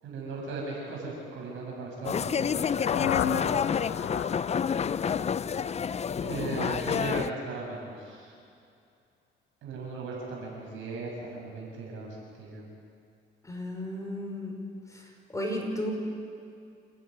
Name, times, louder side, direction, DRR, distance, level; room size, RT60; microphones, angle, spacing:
voice 1, 0.0-2.7 3.0-3.7 6.2-8.3 9.6-12.7, right 3 dB, 85° right, -2 dB, 7.8 m, -37 dB
sound 1, 2.0-7.3, left 7 dB, 35° left, 0.5 m, -29 dB
sound 2, 2.4-6.3, left 10 dB, 70° left, 0.9 m, -35 dB
voice 2, 13.4-14.6 14.9-15.9, left 1 dB, 15° left, 1 dB, 5.0 m, -34 dB
29.0 x 11.0 x 9.6 m, 2.4 s
cardioid pair, 90°, 20 cm